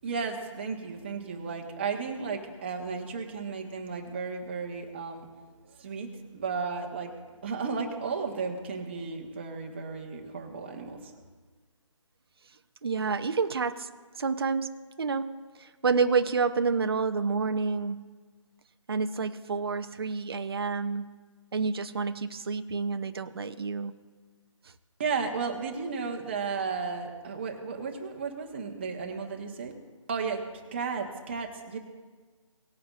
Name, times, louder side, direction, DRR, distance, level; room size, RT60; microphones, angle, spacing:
voice 1, 0.0-5.3 5.6-7.1 7.4-11.1 25.0-29.7 30.1-31.8, right 5 dB, 20° right, 2 dB, 1.2 m, -34 dB
voice 2, 12.8-13.9 14.2-18.1 18.9-21.2 21.5-23.9, right 5 dB, 50° right, 8 dB, 0.7 m, -29 dB
19.0 x 9.3 x 2.4 m, 1.4 s
figure-of-eight pair, 165°, 17 cm